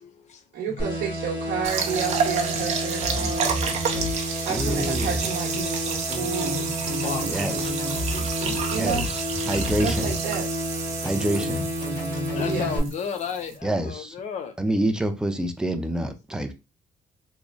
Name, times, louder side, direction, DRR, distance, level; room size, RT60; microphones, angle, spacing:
voice 1, 0.0-0.9 2.3-3.3 3.6-4.5 5.5-6.1 6.6-8.7 9.0-9.2 9.6-9.8 10.9-11.5 12.2-14.5, left 7 dB, 50° left, 0.5 m, -37 dB
voice 2, 0.5-3.6 4.1-6.6 8.7-9.1 9.8-10.5 12.3-12.8, right 7 dB, 80° right, 0.9 m, -31 dB
sound 1, 0.8-12.8, equal, 30° left, 1.7 m, -31 dB
sound 2, 1.6-13.6, right 6 dB, 45° right, 0.6 m, -30 dB
sound 3, 3.0-4.1 4.5-5.2 6.1-9.1 9.5-10.1 11.0-12.9, left 1 dB, 15° left, 1.1 m, -32 dB
voice 3, 4.5-5.2 7.3-7.8 8.8-9.2 9.5-10.1 11.0-11.7 13.6-14.1 14.6-16.5, right 1 dB, 5° right, 0.3 m, -27 dB
3.6 x 3.0 x 2.4 m
cardioid pair, 180°, 16 cm